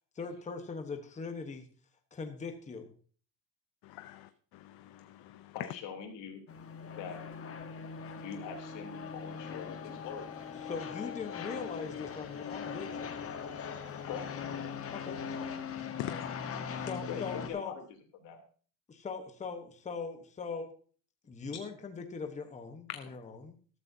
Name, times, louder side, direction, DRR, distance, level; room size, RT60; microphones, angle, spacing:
voice 1, 0.2-1.7 2.1-2.9 10.6-13.2 14.9-15.2 16.0-16.2 16.8-17.7 18.9-20.7 21.2-23.5, left 4 dB, 15° left, 5 dB, 1.1 m, -40 dB
voice 2, 3.8-5.5 16.0-16.2 22.9-23.0, left 13 dB, 65° left, 11 dB, 0.8 m, -43 dB
voice 3, 5.5-6.4 7.0-7.2 8.1-10.3 14.0-14.3 17.1-17.8 18.1-18.4, left 7 dB, 80° left, 3 dB, 3.2 m, -43 dB
sound 1, 6.5-17.5, left 6 dB, 35° left, 1.2 m, -40 dB
14.0 x 13.0 x 2.7 m, 0.42 s
cardioid pair, 170°, 42 cm